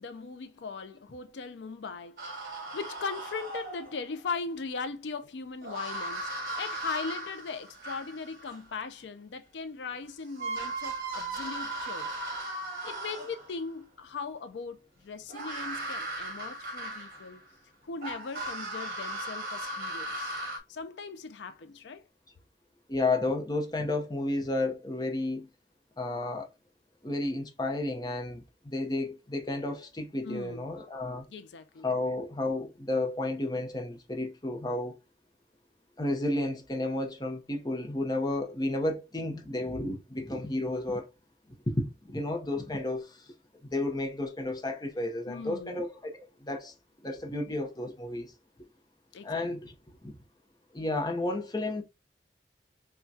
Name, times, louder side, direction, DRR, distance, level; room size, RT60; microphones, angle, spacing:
voice 1, 0.0-2.5 2.7-6.3 6.6-12.2 12.5-12.6 12.8-17.4 17.8-20.4 20.7-22.0 30.2-30.7 31.3-31.9 45.3-45.8 49.1-49.5, left 4 dB, 85° left, 0.5 m, -39 dB
sound 1, 2.2-4.0 5.6-8.6 9.9-10.0 10.3-13.6 15.3-17.4 18.0-20.6, right 1 dB, 50° right, 1.5 m, -37 dB
voice 2, 22.9-25.5 26.0-26.5 27.0-31.3 31.8-34.9 36.0-41.1 41.7-43.3 43.6-46.7 47.0-48.3 49.2-49.7 50.0-50.1 50.7-51.8, left 2 dB, 25° left, 0.7 m, -32 dB
5.7 x 2.2 x 2.7 m
head